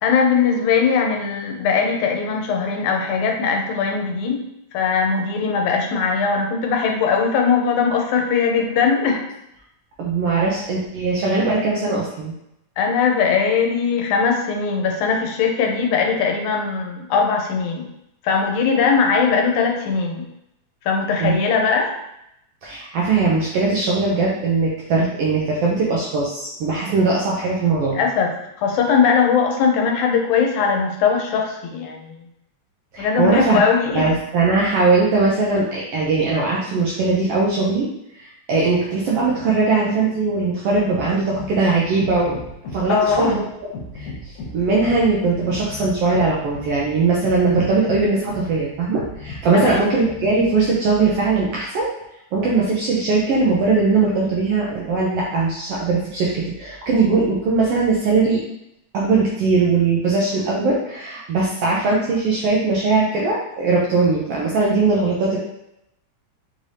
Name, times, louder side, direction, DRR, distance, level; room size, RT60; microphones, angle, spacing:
voice 1, 0.0-9.2 12.8-17.9 18.2-20.3 20.8-21.9 27.8-32.2 33.0-34.2 42.9-43.4 49.5-49.9, left 5 dB, 90° left, 1 dB, 2.1 m, -20 dB
voice 2, 10.0-12.3 21.2-21.4 22.6-28.0 32.9-33.6 33.9-37.9 38.1-42.4 42.7-43.4 43.9-51.9 52.3-58.4 58.9-65.4, right 3 dB, 80° right, -4 dB, 1.4 m, -20 dB
sound 1, 40.7-50.6, left 2 dB, 70° left, 2.1 m, -37 dB
5.1 x 3.2 x 2.7 m, 0.81 s
omnidirectional pair, 3.3 m